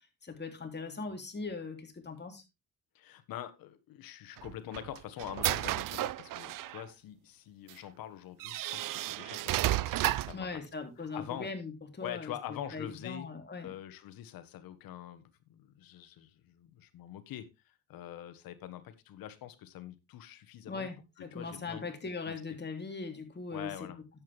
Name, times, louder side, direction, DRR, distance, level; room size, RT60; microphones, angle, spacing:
voice 1, 0.2-2.4 10.3-13.7 20.7-23.9, left 4 dB, 30° left, 3.3 m, -40 dB
voice 2, 2.9-10.6 11.0-11.5 12.0-13.3 13.6-20.9 21.2-22.4 23.5-24.0, left 11 dB, 80° left, 1.6 m, -45 dB
sound 1, 4.4-6.8 7.7-7.8 8.4-10.4, right 15 dB, 65° right, 0.6 m, -32 dB
10.5 x 8.7 x 3.4 m
cardioid pair, 85°, 35 cm